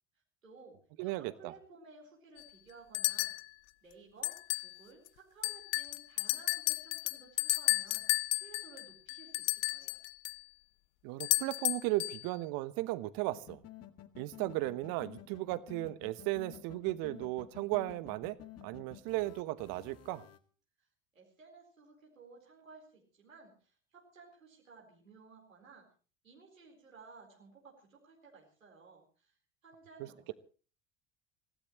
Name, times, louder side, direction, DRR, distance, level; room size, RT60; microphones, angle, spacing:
voice 1, 0.4-3.3 3.8-10.0 20.8-20.9 21.1-25.9 26.2-29.4 29.6-30.3, right 4 dB, 90° right, 4.4 m, -57 dB
voice 2, 1.0-1.5 11.0-13.6 14.2-18.4 18.6-20.3, right 18 dB, 60° right, 1.2 m, -35 dB
sound 1, 2.4-2.5 2.9-3.4 4.2-4.7 5.1-5.2 5.4-10.4 11.2-12.2, left 21 dB, 60° left, 0.8 m, -33 dB
sound 2, 13.3-20.4, left 12 dB, 40° left, 2.2 m, -51 dB
24.5 x 16.5 x 3.1 m
figure-of-eight pair, 65°, 39 cm